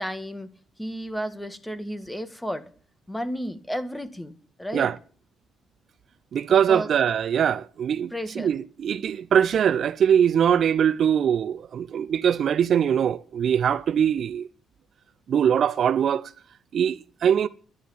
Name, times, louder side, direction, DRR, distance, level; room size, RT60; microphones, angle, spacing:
voice 1, 0.0-2.7 3.1-4.9 6.5-6.9 8.1-8.5, equal, 5° left, 1.7 m, -33 dB
voice 2, 6.3-14.5 15.3-16.3 16.7-17.5, right 8 dB, 60° right, 0.6 m, -22 dB
11.0 x 10.0 x 8.6 m
cardioid pair, 90°, 0 cm